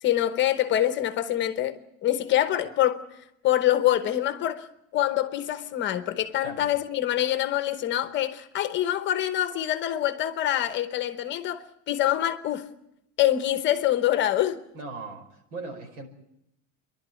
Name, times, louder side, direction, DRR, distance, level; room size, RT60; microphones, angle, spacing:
voice 1, 0.0-3.0 3.4-4.7 4.9-12.7 13.2-14.6, left 12 dB, 30° left, 1.0 m, -25 dB
voice 2, 14.7-16.1, right 3 dB, 85° right, 5.3 m, -39 dB
29.5 x 11.5 x 9.3 m
cardioid pair, 175°, 37 cm